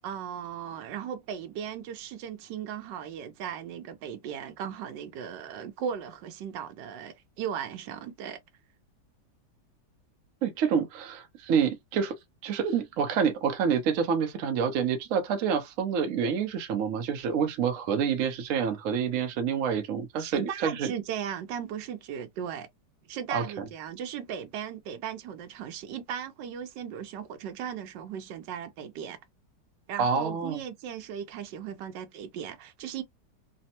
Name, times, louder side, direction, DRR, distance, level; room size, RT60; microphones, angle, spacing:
voice 1, 0.0-8.4 20.2-22.7 23.1-29.2 29.9-33.0, right 8 dB, 80° right, 1.3 m, -37 dB
voice 2, 10.4-12.1 12.4-20.9 23.3-23.6 30.0-30.6, right 7 dB, 65° right, 0.8 m, -27 dB
3.3 x 2.0 x 2.7 m
omnidirectional pair, 1.9 m